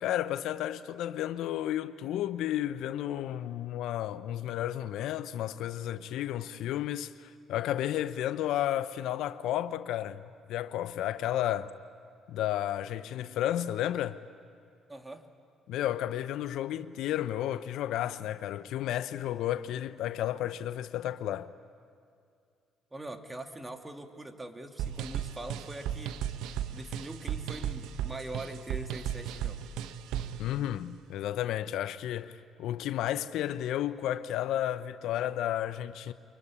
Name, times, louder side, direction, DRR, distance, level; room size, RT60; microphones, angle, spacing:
voice 1, 0.0-11.7 12.3-14.2 15.7-21.5 30.4-36.1, left 12 dB, 75° left, 0.7 m, -32 dB
voice 2, 14.9-15.3 22.9-26.2 26.7-29.6, right 2 dB, 20° right, 2.4 m, -42 dB
sound 1, 24.8-30.4, right 10 dB, 80° right, 1.0 m, -35 dB
24.5 x 22.0 x 9.9 m
supercardioid pair, 60°, 0 cm